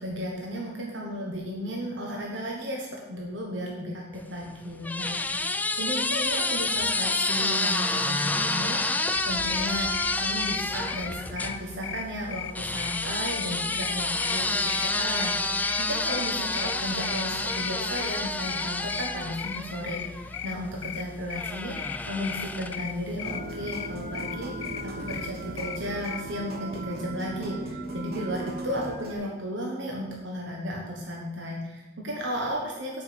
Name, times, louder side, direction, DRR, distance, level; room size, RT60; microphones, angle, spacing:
voice 1, 0.0-33.0, equal, 80° right, -2 dB, 1.3 m, -34 dB
sound 1, 4.2-11.6 12.6-20.5 21.3-23.0, left 2 dB, 10° left, 0.3 m, -29 dB
sound 2, 9.1-26.2, left 9 dB, 90° left, 0.4 m, -39 dB
sound 3, 23.2-29.1, right 2 dB, 55° right, 1.1 m, -37 dB
7.0 x 5.4 x 6.9 m, 1.1 s
head